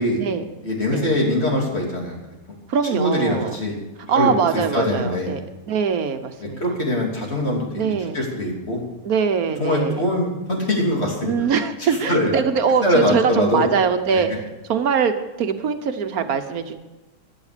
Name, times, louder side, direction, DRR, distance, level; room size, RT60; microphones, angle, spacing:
voice 1, 0.6-2.2 2.9-3.7 4.1-4.3 4.7-5.3 6.6-8.8 9.6-11.3 12.1-12.3 12.8-13.7 14.1-14.2, left 1 dB, 45° left, -1 dB, 3.2 m, -22 dB
voice 2, 2.7-3.6 4.1-6.8 7.7-8.2 9.0-10.0 11.3-14.3 14.7-16.7, right 6 dB, 75° right, 8 dB, 1.4 m, -22 dB
15.5 x 10.5 x 5.0 m, 1.1 s
omnidirectional pair, 1.6 m